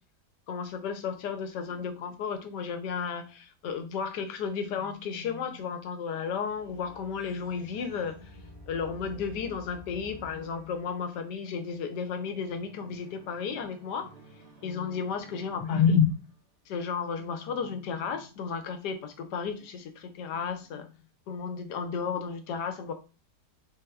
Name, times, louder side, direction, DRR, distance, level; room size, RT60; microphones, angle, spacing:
voice 1, 0.5-16.1 16.7-20.9 21.3-22.9, left 6 dB, 80° left, 1.2 m, -32 dB
sound 1, 6.4-16.5, right 1 dB, 45° right, 1.4 m, -52 dB
4.1 x 3.3 x 2.2 m
omnidirectional pair, 1.8 m